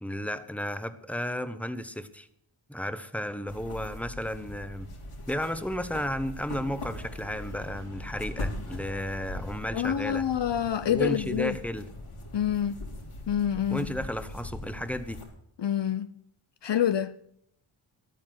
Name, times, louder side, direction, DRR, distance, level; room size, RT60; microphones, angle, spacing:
voice 1, 0.0-2.3 2.7-4.9 5.3-10.2 10.9-11.9 13.7-15.2, equal, 5° left, 1.1 m, -33 dB
sound 1, 3.5-15.2, left 1 dB, 85° left, 4.0 m, -40 dB
voice 2, 9.7-11.6 12.3-12.8 13.3-14.0 15.6-16.1 16.6-17.1, left 9 dB, 60° left, 0.7 m, -27 dB
13.0 x 9.2 x 7.8 m
cardioid pair, 75°, 50 cm